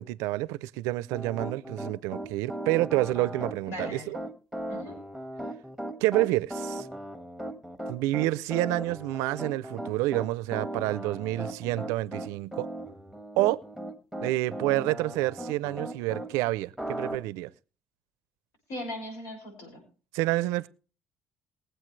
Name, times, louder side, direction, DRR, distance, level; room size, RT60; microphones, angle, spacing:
voice 1, 0.0-4.2 6.0-6.9 7.9-12.7 13.4-13.6 14.2-17.5 20.1-20.7, right 18 dB, 90° right, 0.5 m, -28 dB
Piano, 1.1-16.3 16.8-17.2, right 1 dB, 5° left, 1.6 m, -37 dB
voice 2, 3.7-4.1 4.7-5.0 18.7-19.8, left 1 dB, 75° left, 6.0 m, -38 dB
21.0 x 8.0 x 3.2 m
supercardioid pair, 80°, 5 cm